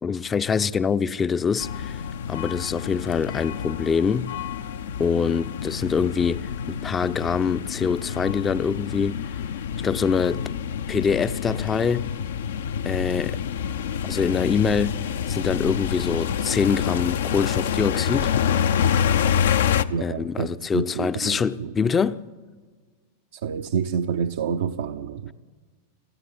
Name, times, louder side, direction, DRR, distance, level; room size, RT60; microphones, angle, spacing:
voice 1, 0.0-2.0 2.3-4.4 5.0-9.2 9.8-10.5 10.9-12.1 12.8-13.4 14.0-15.0 15.3-18.4 20.0-22.2, left 6 dB, 20° left, 0.6 m, -24 dB
sound 1, 1.6-19.8, left 8 dB, 60° left, 0.6 m, -27 dB
voice 2, 19.9-21.7 23.3-25.3, right 7 dB, 60° right, 0.7 m, -28 dB
27.5 x 9.9 x 9.8 m
figure-of-eight pair, 90°, 0 cm